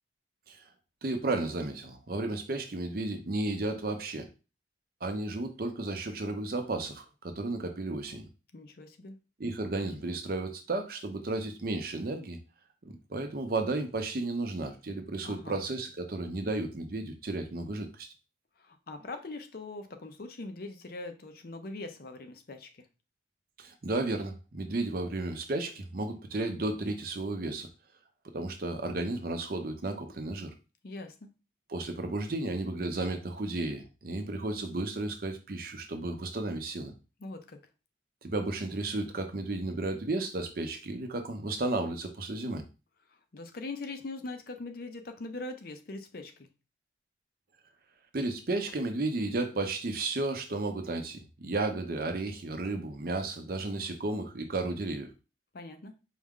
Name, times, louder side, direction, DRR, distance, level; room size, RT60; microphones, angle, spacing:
voice 1, 1.0-4.3 5.0-8.2 9.4-12.4 12.8-18.1 23.6-27.7 28.3-30.5 31.7-36.9 38.2-42.6 48.1-55.1, right 2 dB, 50° right, 6 dB, 0.6 m, -33 dB
voice 2, 8.5-9.2 15.2-15.6 18.6-22.9 30.8-31.3 37.2-37.6 43.3-46.5 55.5-55.9, left 2 dB, 55° left, 7 dB, 0.5 m, -42 dB
4.7 x 2.1 x 3.6 m, 0.30 s
head